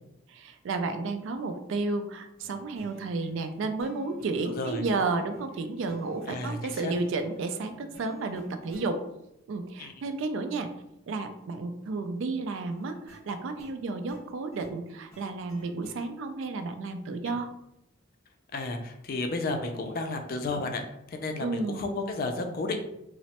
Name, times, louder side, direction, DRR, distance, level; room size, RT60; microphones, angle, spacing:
voice 1, 0.3-9.0 9.5-10.7 11.1-17.5 21.4-21.8, right 3 dB, 60° right, 8 dB, 0.3 m, -32 dB
sound 1, 2.4-9.0 12.7-16.1, right 2 dB, 15° left, 0.9 m, -52 dB
voice 2, 4.4-4.9 6.3-6.9 9.8-9.9 17.2-17.4 18.5-22.9, left 2 dB, 45° left, 5 dB, 0.3 m, -32 dB
3.0 x 2.0 x 2.8 m, 0.83 s
head